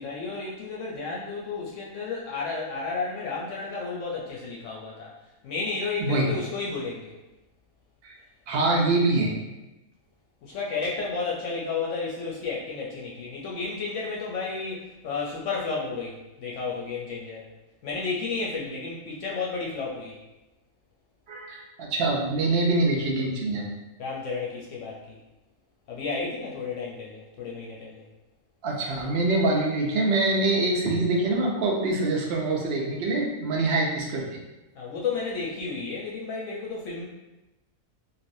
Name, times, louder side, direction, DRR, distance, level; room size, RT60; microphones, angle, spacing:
voice 1, 0.0-5.2 5.4-7.2 10.4-17.4 17.8-20.2 24.0-25.2 25.9-28.0 34.7-37.1, left 4 dB, 70° left, -4 dB, 0.8 m, -32 dB
voice 2, 8.5-9.3 21.3-23.6 28.6-34.4, right 2 dB, 55° right, -2 dB, 0.8 m, -24 dB
3.2 x 2.4 x 2.6 m, 1.0 s
omnidirectional pair, 1.4 m